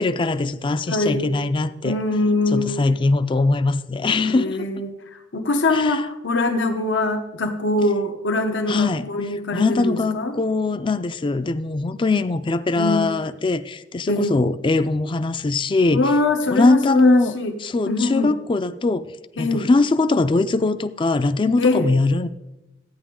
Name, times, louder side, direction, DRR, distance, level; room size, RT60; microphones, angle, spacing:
voice 1, 0.0-2.0 2.5-4.7 5.7-6.0 8.7-9.1 9.5-16.1 16.5-17.3 17.6-19.1 19.4-22.3, left 3 dB, 25° left, 12 dB, 0.4 m, -21 dB
voice 2, 0.9-1.3 1.8-2.8 4.3-5.0 5.3-10.4 12.8-13.1 14.1-14.4 15.9-17.5 17.9-18.3 19.4-19.7 21.6-21.9, left 2 dB, 80° left, 6 dB, 0.9 m, -22 dB
13.5 x 9.2 x 3.8 m, 1.0 s
head